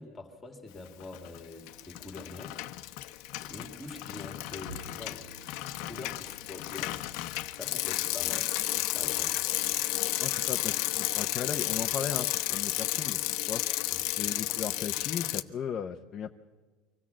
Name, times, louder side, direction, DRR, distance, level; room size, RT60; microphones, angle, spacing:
voice 1, 0.0-2.7 3.4-5.3 5.8-7.0 7.5-8.6 8.9-9.5 13.9-14.0, left 2 dB, 10° left, 5 dB, 2.0 m, -45 dB
Bicycle, 1.0-1.4 1.7-15.4, left 18 dB, 55° left, 0.8 m, -32 dB
Bowed string instrument, 4.7-11.1, right 1 dB, 60° right, 1.9 m, -54 dB
voice 2, 10.2-13.2 13.5-13.6 14.2-16.3, left 8 dB, 25° left, 4 dB, 0.7 m, -36 dB
24.5 x 16.5 x 7.4 m, 1.4 s
cardioid pair, 180°, 0 cm